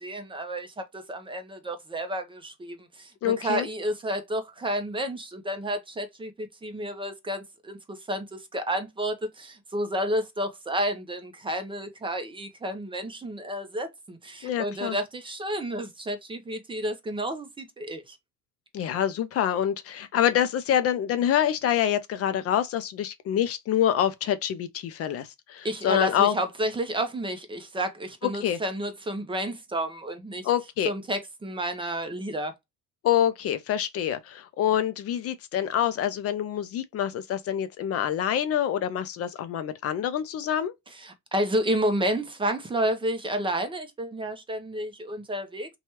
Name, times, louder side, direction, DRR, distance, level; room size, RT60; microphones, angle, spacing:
voice 1, 0.0-18.2 25.6-30.5 30.9-32.5 41.0-45.7, right 1 dB, 15° right, 0.6 m, -31 dB
voice 2, 3.2-3.7 14.4-15.0 18.7-26.3 28.2-28.6 30.4-30.9 33.0-40.7, left 10 dB, 45° left, 0.4 m, -26 dB
2.9 x 2.3 x 2.8 m
cardioid pair, 115°, 33 cm